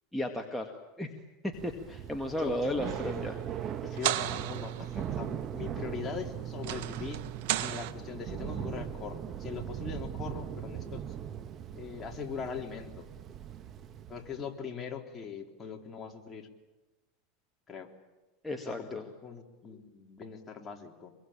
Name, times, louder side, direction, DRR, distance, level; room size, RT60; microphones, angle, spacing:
voice 1, 0.1-0.7 1.0-1.1 1.4-3.4 18.4-19.1, left 1 dB, 5° left, 2 dB, 2.1 m, -34 dB
Thunder / Rain, 1.5-14.4, right 9 dB, 35° right, 1.3 m, -40 dB
voice 2, 2.4-3.2 3.8-7.2 7.6-11.0 11.7-13.1 14.1-16.5 17.7-17.9 18.6-21.2, left 6 dB, 25° left, 1 dB, 3.6 m, -41 dB
sound 1, 2.8-7.9, right 13 dB, 70° right, 1.5 m, -36 dB
25.5 x 22.5 x 8.9 m, 1.1 s
supercardioid pair, 125°, 0 cm